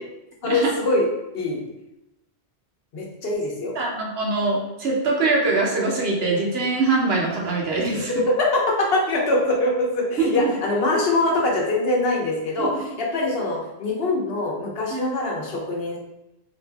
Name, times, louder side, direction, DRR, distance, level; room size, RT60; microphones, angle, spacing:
voice 1, 0.4-1.1 1.3-1.6 2.9-3.7 7.9-12.7 13.0-16.0, left 2 dB, 70° left, -1 dB, 1.0 m, -23 dB
voice 2, 3.7-8.1 10.2-10.5 12.6-12.7 14.9-15.0, right 3 dB, 70° right, -2 dB, 1.1 m, -23 dB
3.9 x 2.6 x 3.4 m, 0.92 s
omnidirectional pair, 1.1 m